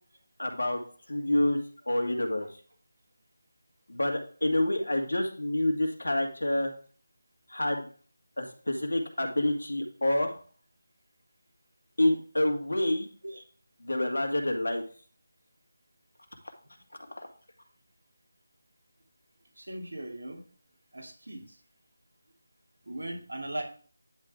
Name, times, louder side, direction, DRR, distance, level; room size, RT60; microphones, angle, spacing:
voice 1, 0.4-0.8 1.1-1.6 1.9-2.5 3.9-6.7 7.5-7.9 8.4-10.4 12.0-13.1 13.8-14.8 17.1-17.3, left 1 dB, 80° left, 4 dB, 1.8 m, -27 dB
voice 2, 19.6-20.4 20.9-21.6 22.9-23.6, right 1 dB, 80° right, 1 dB, 2.5 m, -38 dB
10.0 x 3.8 x 4.7 m, 0.42 s
figure-of-eight pair, 165°, 0 cm